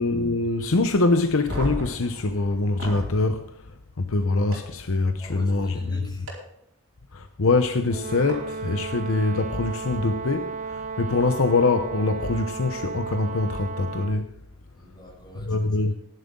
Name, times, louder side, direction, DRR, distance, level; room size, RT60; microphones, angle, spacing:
voice 1, 0.0-5.8 7.1-14.3 15.3-15.9, left 3 dB, 65° left, 0.8 m, -24 dB
sound 1, 1.4-3.1 4.5-4.6 6.3-6.4 8.3-8.4 9.8-9.9, right 1 dB, 65° right, 4.6 m, -34 dB
voice 2, 5.2-6.3 14.7-16.0, equal, 20° left, 6.1 m, -45 dB
Brass instrument, 7.9-14.3, right 4 dB, 35° right, 0.5 m, -34 dB
16.0 x 11.0 x 3.8 m
head